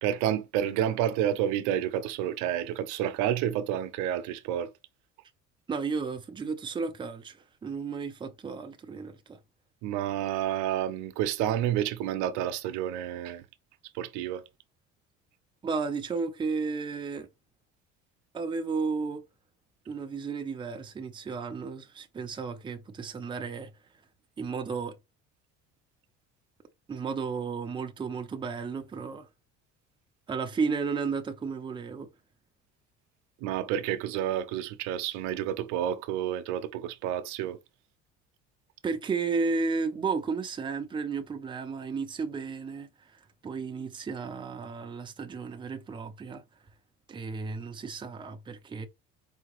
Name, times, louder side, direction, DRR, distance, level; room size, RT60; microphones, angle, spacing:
voice 1, 0.0-4.7 9.8-13.4 14.0-14.4 33.4-37.6, right 11 dB, 80° right, 0.6 m, -29 dB
voice 2, 5.7-9.4 15.6-17.3 18.3-19.2 19.9-23.7 24.4-24.9 26.9-29.3 30.3-32.1 38.8-46.4 47.1-48.9, right 4 dB, 15° right, 0.6 m, -33 dB
4.7 x 2.8 x 3.0 m
cardioid pair, 120°, 29 cm